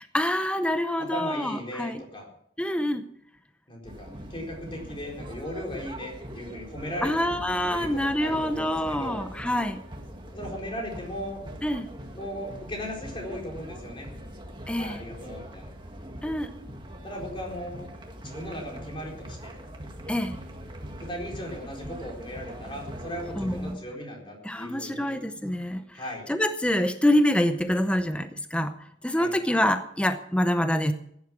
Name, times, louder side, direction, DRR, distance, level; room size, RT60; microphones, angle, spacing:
voice 1, 0.0-2.0 2.6-3.1 7.0-9.8 11.6-11.9 14.7-15.0 16.2-16.5 20.1-20.4 23.4-23.8 24.4-26.0 26.3-28.7 29.0-30.9, left 1 dB, 5° left, 9 dB, 0.7 m, -26 dB
voice 2, 1.0-2.3 3.7-7.3 7.7-9.2 10.3-11.4 12.1-14.1 14.8-15.7 17.0-17.8 18.2-19.5 21.0-25.2 25.9-26.3 29.1-29.3, equal, 25° left, 0 dB, 4.2 m, -37 dB
sound 1, 3.8-23.7, equal, 25° right, 1.9 m, -42 dB
15.5 x 10.5 x 6.1 m, 0.72 s
head